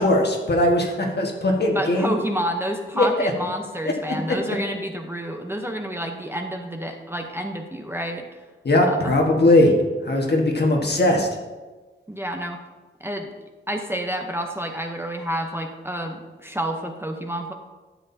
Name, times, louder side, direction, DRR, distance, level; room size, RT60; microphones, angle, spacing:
voice 1, 0.0-2.1 3.0-3.3 8.6-9.7 10.1-11.3, left 1 dB, 55° left, 1 dB, 1.5 m, -19 dB
voice 2, 1.7-8.3 8.8-9.2 12.1-12.6 13.0-13.3 13.7-17.5, equal, 10° right, 3 dB, 0.7 m, -29 dB
12.0 x 7.7 x 2.7 m, 1.3 s
wide cardioid pair, 100°, 21 cm